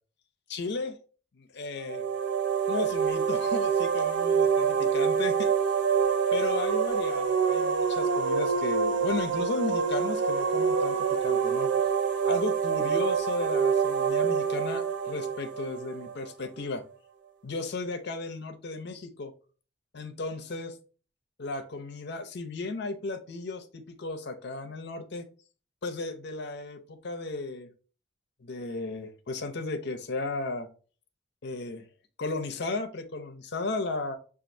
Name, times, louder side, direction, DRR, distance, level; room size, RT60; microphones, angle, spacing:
voice 1, 0.5-1.0 1.3-2.0 2.7-5.5 6.3-11.0 11.2-11.7 12.2-16.8 17.4-19.3 19.9-20.8 21.4-25.3 25.8-27.7 28.4-30.7 31.4-31.9 32.2-34.2, left 3 dB, 60° left, 7 dB, 0.6 m, -34 dB
sound 1, 1.8-16.5, right 6 dB, 70° right, 0.6 m, -26 dB
6.0 x 2.5 x 2.6 m, 0.39 s
head